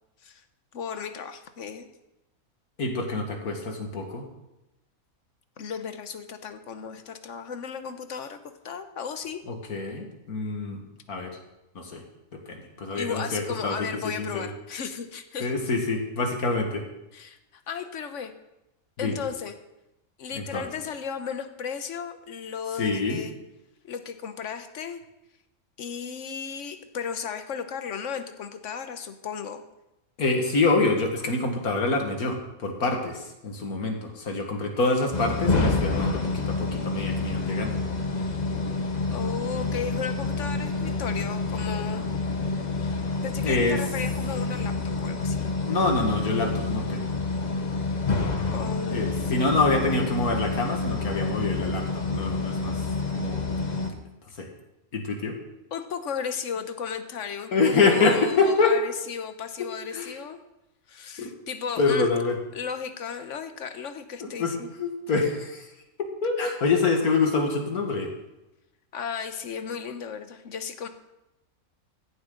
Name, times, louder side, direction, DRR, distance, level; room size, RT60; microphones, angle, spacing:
voice 1, 0.7-1.9 5.6-9.4 12.9-15.5 17.1-18.3 19.0-19.6 20.2-23.4 23.8-25.0 25.8-29.6 39.1-42.1 43.2-45.5 48.5-49.5 55.7-57.5 57.8-60.4 60.9-62.1 62.5-64.7 68.9-70.9, left 6 dB, 60° left, 9 dB, 1.3 m, -35 dB
voice 2, 2.8-4.3 9.5-10.8 11.1-11.4 11.8-12.0 12.3-14.5 15.4-16.8 19.0-19.2 20.4-20.6 22.8-23.2 30.2-37.8 43.4-43.8 45.7-47.1 48.9-52.8 53.1-53.4 53.7-53.9 54.4-54.5 54.9-55.4 57.5-58.8 59.9-60.1 61.2-61.3 61.8-62.4 64.2-64.5 64.8-65.7 66.0-68.1, left 3 dB, 85° left, 3 dB, 2.2 m, -26 dB
sound 1, 35.1-53.9, left 3 dB, 30° left, 1.1 m, -28 dB
16.0 x 11.5 x 3.9 m, 0.91 s
omnidirectional pair, 1.5 m